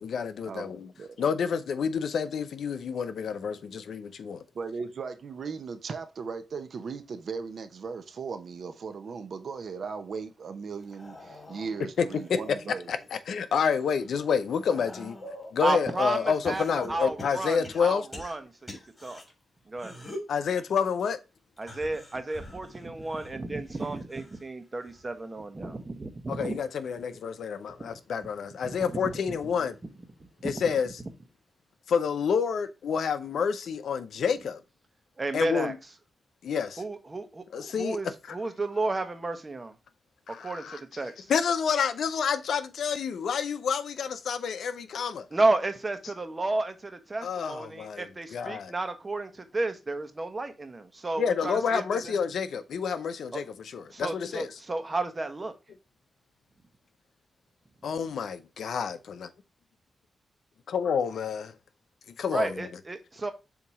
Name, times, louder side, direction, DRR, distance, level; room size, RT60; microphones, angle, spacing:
voice 1, 0.0-0.9 1.2-4.4 12.0-12.4 12.9-15.2 15.5-18.1 20.3-21.2 26.3-29.8 30.4-31.0 31.9-34.6 35.3-35.7 36.4-36.8 37.5-38.4 40.3-41.0 41.3-45.2 47.2-48.7 51.2-54.5 57.8-59.3 60.7-61.5 62.2-62.8, left 6 dB, 80° left, 0.6 m, -29 dB
voice 2, 4.5-12.9, right 5 dB, 65° right, 0.8 m, -37 dB
sound 1, 10.8-13.1 13.6-15.6 16.4-19.2 19.7-20.4 21.6-24.4 24.8-25.2 26.4-26.5, left 1 dB, 20° left, 2.9 m, -45 dB
voice 3, 15.6-16.2 16.5-19.2 19.7-19.9 21.6-26.6 28.6-28.7 30.4-30.5 35.2-35.7 36.8-39.7 40.4-41.1 45.3-52.1 53.3-53.4 53.9-55.5 62.3-63.3, right 2 dB, 30° right, 1.1 m, -32 dB
7.1 x 2.9 x 4.8 m
cardioid pair, 85°, 0 cm